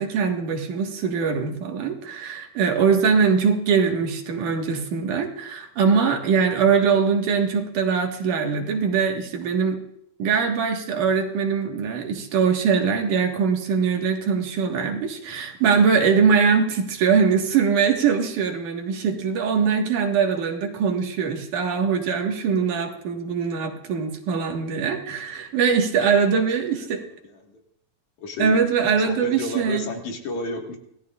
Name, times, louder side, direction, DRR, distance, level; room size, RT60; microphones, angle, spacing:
voice 1, 0.0-9.8 10.2-27.0 28.4-29.9, right 6 dB, 65° right, 2 dB, 3.1 m, -22 dB
voice 2, 26.3-27.6 28.2-28.6 29.0-30.8, left 3 dB, 60° left, 1 dB, 3.1 m, -33 dB
26.5 x 17.5 x 2.5 m, 0.76 s
omnidirectional pair, 3.9 m